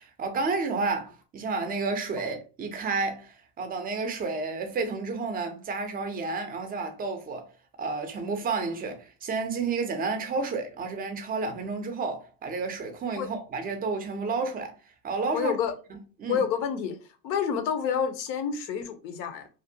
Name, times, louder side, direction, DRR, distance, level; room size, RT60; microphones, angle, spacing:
voice 1, 0.0-7.4 7.8-14.7 15.0-15.5 16.2-16.4, right 4 dB, 20° right, 0.3 m, -31 dB
voice 2, 15.3-15.7 16.3-17.0 17.2-19.5, left 7 dB, 90° left, 0.7 m, -28 dB
2.6 x 2.1 x 2.6 m
supercardioid pair, 100°, 50 cm